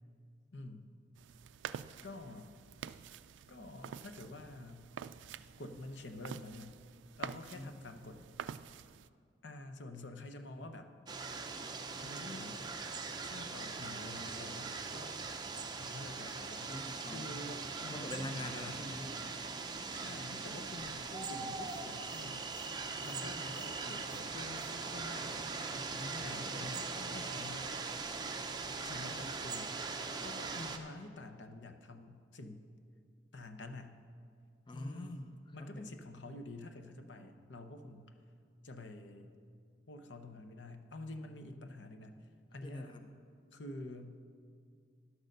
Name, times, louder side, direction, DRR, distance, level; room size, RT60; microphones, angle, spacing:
voice 1, 0.5-0.9 2.0-2.5 3.5-4.9 5.6-6.8 7.2-8.3 9.4-10.9 12.0-12.7 13.2-15.2 15.8-16.7 17.1-18.8 19.9-22.5 23.0-25.4 26.2-27.8 28.8-29.7 30.1-32.6 33.3-34.0 34.7-35.2 35.5-38.1 38.6-39.3 39.9-42.9 43.5-44.2, left 2 dB, 75° left, 7 dB, 0.8 m, -48 dB
sound 1, 1.2-9.1, right 8 dB, 80° right, 0.3 m, -48 dB
voice 2, 7.3-7.7 16.6-17.4 17.6-19.1 25.7-26.7 34.7-35.9 42.6-43.1, left 1 dB, 25° left, 6 dB, 0.5 m, -45 dB
sound 2, 11.1-30.8, right 4 dB, 25° right, 0.5 m, -41 dB
11.0 x 6.6 x 6.6 m, 2.2 s
head